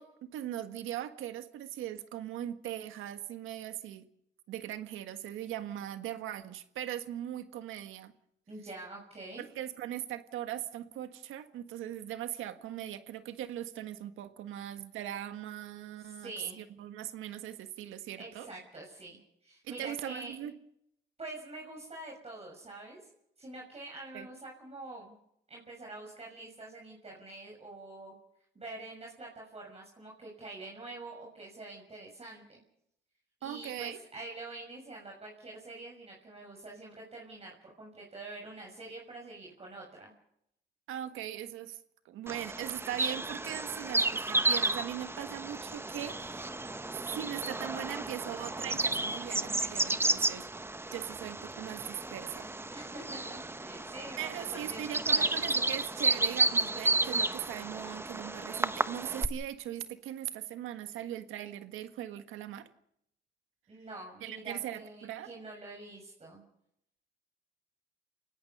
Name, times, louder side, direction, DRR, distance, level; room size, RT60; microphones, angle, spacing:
voice 1, 0.0-4.1 4.5-8.1 9.4-16.3 16.6-18.5 19.6-20.5 24.1-24.3 33.4-34.0 40.9-41.8 42.0-46.7 47.1-50.5 50.9-52.5 54.2-62.7 64.2-65.3, right 11 dB, 90° right, 9 dB, 1.6 m, -40 dB
voice 2, 8.5-9.4 16.1-16.6 18.2-20.3 21.2-23.1 23.4-25.2 25.5-28.1 28.5-32.6 33.4-40.1 52.7-55.5 63.7-66.4, right 2 dB, 30° right, -2 dB, 6.7 m, -46 dB
Bird vocalization bird call bird song, 42.3-59.3, right 2 dB, 10° right, 0.9 m, -32 dB
29.0 x 18.0 x 5.6 m, 0.76 s
cardioid pair, 90°, 20 cm